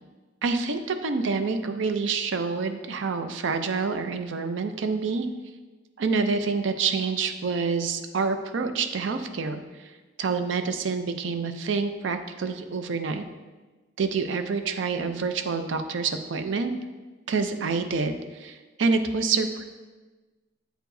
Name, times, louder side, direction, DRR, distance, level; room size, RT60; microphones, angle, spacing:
voice 1, 0.4-5.3 6.0-9.9 10.2-13.2 14.0-16.7 17.3-19.6, right 4 dB, 70° right, 8 dB, 0.5 m, -27 dB
7.8 x 4.6 x 2.6 m, 1.3 s
head